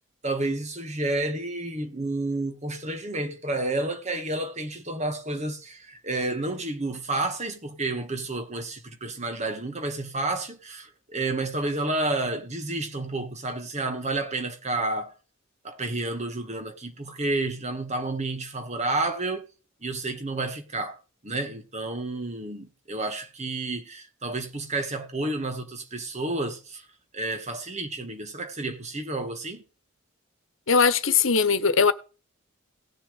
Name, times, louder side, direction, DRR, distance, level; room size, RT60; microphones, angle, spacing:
voice 1, 0.2-15.1 15.6-19.5 19.8-21.0 21.2-26.8 27.1-29.6, right 2 dB, 35° right, 1.7 m, -30 dB
voice 2, 30.7-31.9, left 5 dB, 70° left, 1.2 m, -20 dB
18.0 x 7.0 x 3.4 m
head